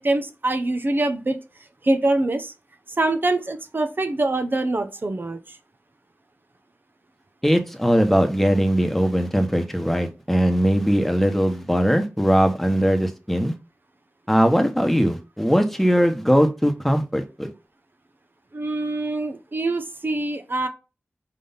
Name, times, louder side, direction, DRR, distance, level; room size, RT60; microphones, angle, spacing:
voice 1, 0.0-1.4 1.8-2.5 3.0-5.6 18.5-20.7, right 2 dB, 50° right, 7 dB, 0.9 m, -24 dB
voice 2, 7.4-13.5 14.3-17.5, equal, 5° left, 6 dB, 1.1 m, -20 dB
5.0 x 3.8 x 5.6 m, 0.29 s
wide cardioid pair, 55°, 5 cm